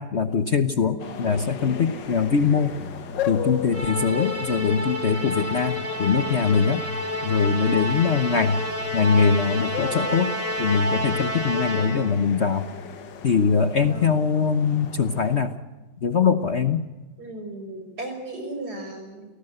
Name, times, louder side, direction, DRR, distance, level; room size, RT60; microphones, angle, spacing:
voice 1, 0.0-2.7 3.3-6.8 7.2-8.6 8.9-12.7 13.2-15.6 16.0-16.9, left 6 dB, 45° left, 9 dB, 1.1 m, -22 dB
sound 1, 1.0-15.4, left 8 dB, 85° left, 2.0 m, -37 dB
voice 2, 1.6-2.0 13.9-14.1 17.2-19.3, right 1 dB, 60° right, 5 dB, 6.2 m, -36 dB
Musical instrument, 3.7-12.2, left 1 dB, 5° right, 3.1 m, -29 dB
29.0 x 18.0 x 7.9 m, 1.2 s
omnidirectional pair, 1.9 m